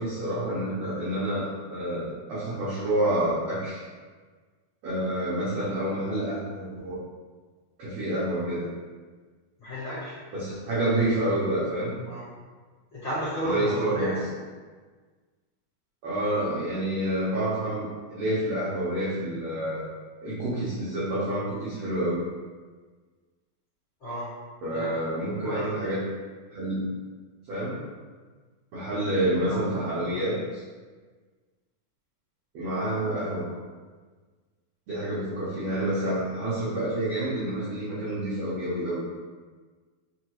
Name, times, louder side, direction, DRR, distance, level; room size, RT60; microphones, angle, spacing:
voice 1, 0.0-3.8 4.8-7.0 7.8-8.7 10.3-12.0 13.4-14.1 16.0-19.9 20.2-22.2 24.6-26.1 26.5-26.9 27.5-27.8 28.7-30.6 32.5-33.5 34.9-39.0, right 1 dB, 85° right, -10 dB, 1.4 m, -28 dB
voice 2, 9.6-10.2 12.0-12.3 12.9-14.2 24.0-24.3 24.7-24.9 25.4-25.8 29.2-30.2, equal, 50° left, -15 dB, 1.6 m, -33 dB
5.6 x 2.3 x 2.9 m, 1.4 s
omnidirectional pair, 4.3 m